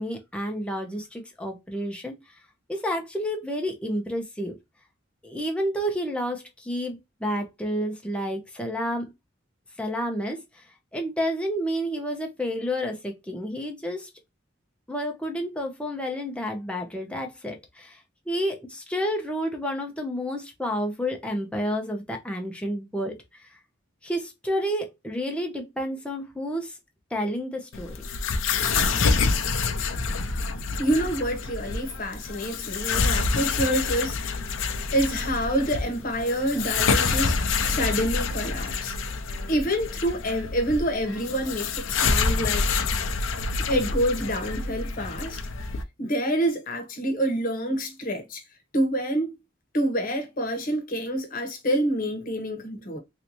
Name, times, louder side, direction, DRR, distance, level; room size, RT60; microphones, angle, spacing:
voice 1, 0.0-2.2 2.7-4.6 5.2-9.1 9.8-10.7 10.9-14.1 14.9-18.0 18.3-23.6 24.0-26.8 27.1-27.9, equal, 5° left, 0.7 m, -30 dB
sound 1, 27.7-45.8, left 4 dB, 85° left, 0.5 m, -27 dB
voice 2, 30.8-34.6 34.9-37.4 37.6-38.9 39.5-42.7 43.7-45.4 46.0-48.4 48.7-49.3 49.7-53.0, equal, 45° left, 1.0 m, -27 dB
3.3 x 2.7 x 3.0 m
head